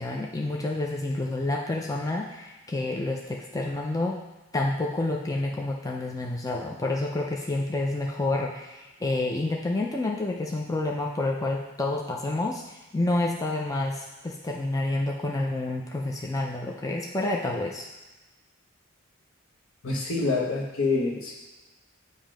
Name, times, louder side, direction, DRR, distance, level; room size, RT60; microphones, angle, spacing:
voice 1, 0.0-4.2 4.5-17.9, left 2 dB, 15° left, -1 dB, 0.4 m, -29 dB
voice 2, 19.8-21.3, left 3 dB, 75° left, -1 dB, 1.2 m, -26 dB
7.5 x 2.7 x 5.0 m, 1.1 s
head